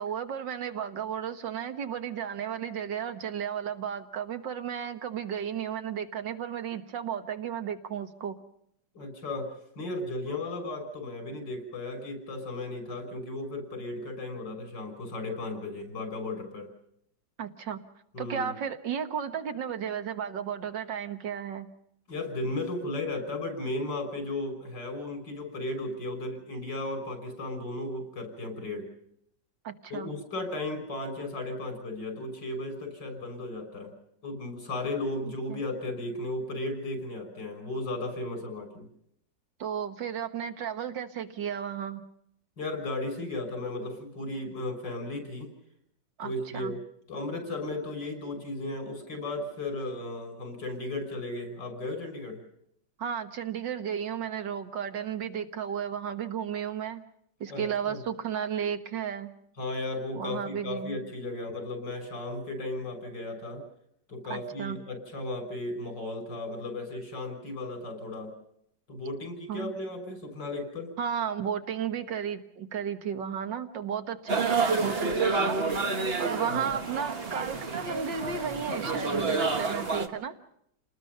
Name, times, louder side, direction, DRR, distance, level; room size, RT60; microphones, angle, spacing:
voice 1, 0.0-8.4 17.4-17.8 18.2-21.7 29.6-30.1 35.2-35.6 39.6-42.0 46.2-46.7 53.0-57.0 57.4-59.3 60.2-61.0 64.3-64.8 69.5-69.7 71.0-75.6 76.2-80.3, right 8 dB, 80° right, 9 dB, 2.0 m, -34 dB
voice 2, 8.9-16.7 18.1-18.5 22.1-28.9 29.9-33.9 34.2-38.9 42.6-45.5 46.2-46.8 47.1-52.4 57.5-58.0 59.6-63.6 64.1-68.3 68.9-70.9 76.5-76.7, left 2 dB, 75° left, 6 dB, 7.0 m, -35 dB
sound 1, 74.3-80.1, right 4 dB, 35° right, 1.7 m, -29 dB
29.5 x 20.0 x 5.5 m, 0.73 s
omnidirectional pair, 1.9 m